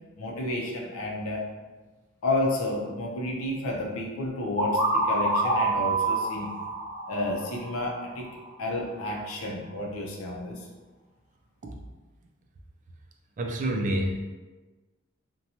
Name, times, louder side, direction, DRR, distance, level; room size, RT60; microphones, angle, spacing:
voice 1, 0.2-1.4 2.2-6.5 7.1-8.3 8.6-10.7, left 2 dB, 80° left, -1 dB, 0.5 m, -31 dB
sound 1, 4.6-8.3, right 2 dB, 20° left, 1.0 m, -27 dB
voice 2, 13.4-14.2, right 1 dB, 35° right, 2 dB, 0.3 m, -28 dB
2.7 x 2.2 x 2.7 m, 1.3 s
head